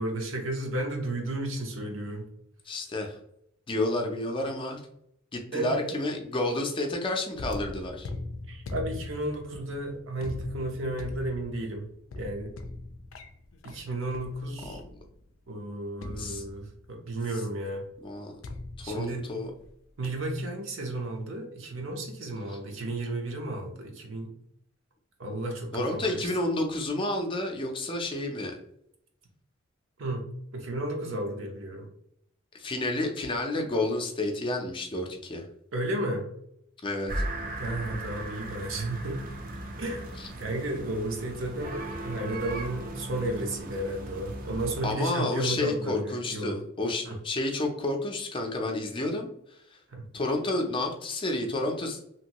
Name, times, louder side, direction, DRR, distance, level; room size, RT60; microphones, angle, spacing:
voice 1, 0.0-2.3 5.5-6.0 8.5-11.9 12.1-12.5 13.6-14.8 15.5-17.9 18.8-19.3 20.0-24.3 25.2-26.3 30.0-30.2 30.5-31.9 35.7-36.3 37.6-39.2 39.8-40.1 40.4-46.6 47.0-47.2 49.9-50.1, right 1 dB, 75° right, 2 dB, 0.8 m, -33 dB
voice 2, 2.7-3.2 3.7-4.8 5.3-8.1 14.7-14.8 16.2-16.4 18.0-18.3 18.8-19.5 22.5-22.6 25.7-28.6 32.5-35.5 36.8-37.2 40.2-40.3 44.8-49.8 50.1-52.0, left 2 dB, 25° left, 3 dB, 0.5 m, -30 dB
sound 1, 7.3-15.3 16.0-17.0 18.4-19.7 20.0-20.4, left 2 dB, 85° left, 0.4 m, -41 dB
sound 2, 37.1-44.9, right 1 dB, 45° right, 0.5 m, -37 dB
2.9 x 2.6 x 2.9 m, 0.73 s
head